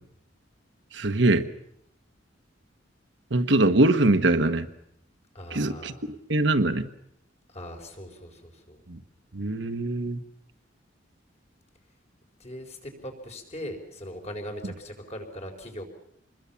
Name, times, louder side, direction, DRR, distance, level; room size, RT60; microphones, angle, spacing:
voice 1, 0.9-1.5 3.3-4.7 5.5-5.9 6.3-6.9 8.9-9.0 9.3-10.2, right 2 dB, 70° right, 8 dB, 1.4 m, -22 dB
voice 2, 5.3-6.1 7.5-8.8 12.4-15.8, equal, 35° left, 4 dB, 4.6 m, -40 dB
27.0 x 21.0 x 7.2 m, 0.74 s
head